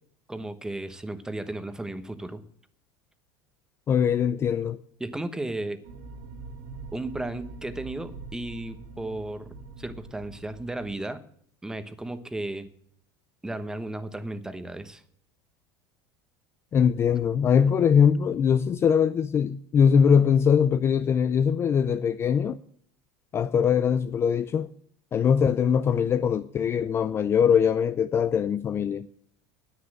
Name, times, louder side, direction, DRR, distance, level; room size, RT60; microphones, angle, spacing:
voice 1, 0.3-2.4 5.0-5.8 6.9-11.2 11.6-12.7 13.4-15.0, right 2 dB, 5° right, 1.0 m, -34 dB
voice 2, 3.9-4.8 16.7-22.6 23.3-24.7 25.1-29.1, left 7 dB, 25° left, 0.4 m, -22 dB
sound 1, 5.8-10.9, right 3 dB, 80° right, 2.3 m, -43 dB
9.8 x 9.4 x 7.6 m
supercardioid pair, 145°, 10 cm